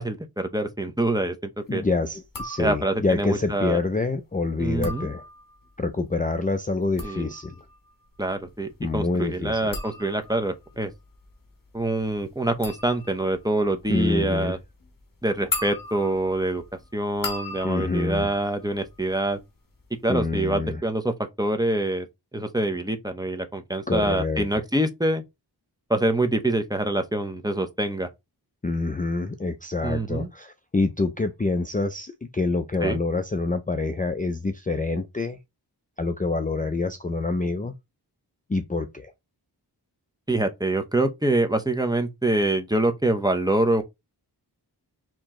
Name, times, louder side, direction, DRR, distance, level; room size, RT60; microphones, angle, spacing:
voice 1, 0.0-1.8 2.6-3.8 4.6-5.1 7.0-7.3 8.2-10.9 11.7-14.6 15.2-16.6 16.9-19.4 20.0-22.1 22.3-25.2 25.9-28.1 29.8-30.3 32.8-33.0 40.3-43.8, right 1 dB, 10° right, 0.8 m, -25 dB
voice 2, 1.7-5.2 5.8-7.6 8.8-9.8 13.9-14.6 17.6-18.3 20.1-20.8 23.9-24.5 28.6-35.4 36.0-37.7 38.5-39.1, left 3 dB, 20° left, 0.4 m, -26 dB
sound 1, 2.2-3.1 4.6-5.7 6.7-19.4 19.7-20.2, left 3 dB, 50° left, 1.3 m, -38 dB
4.6 x 3.0 x 3.6 m
wide cardioid pair, 80°, 42 cm